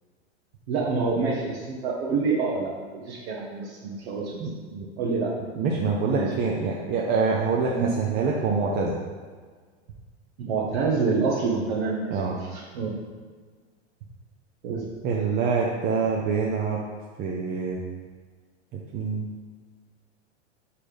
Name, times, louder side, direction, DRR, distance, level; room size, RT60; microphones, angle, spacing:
voice 1, 0.7-4.4 5.0-5.4 6.1-6.3 7.6-7.9 10.4-12.2 12.5-12.9 14.6-14.8, right 4 dB, 65° right, -3 dB, 1.1 m, -27 dB
voice 2, 4.4-4.9 5.5-9.0 12.1-12.4 15.0-16.8 17.2-17.8 18.7-19.3, right 4 dB, 30° right, -2 dB, 0.7 m, -26 dB
5.0 x 4.2 x 5.1 m, 1.5 s
hypercardioid pair, 120°, 35 cm